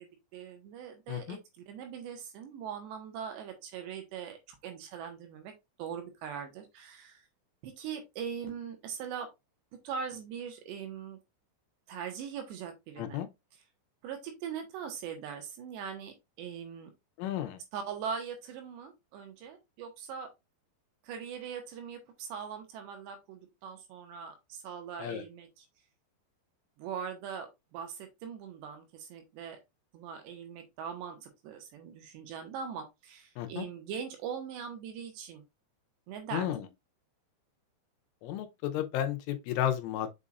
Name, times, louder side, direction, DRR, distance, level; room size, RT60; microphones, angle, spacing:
voice 1, 0.0-5.5 5.8-7.3 7.6-9.3 9.8-11.2 11.9-13.2 14.0-16.9 17.7-20.3 21.0-25.7 26.8-29.6 29.9-35.4 36.1-36.5, right 7 dB, 75° right, 3.1 m, -41 dB
voice 2, 1.1-1.4 13.0-13.3 17.2-17.6 25.0-25.2 33.4-33.7 36.3-36.7 38.2-40.2, left 11 dB, 85° left, 3.3 m, -33 dB
7.3 x 5.3 x 2.5 m
omnidirectional pair, 5.6 m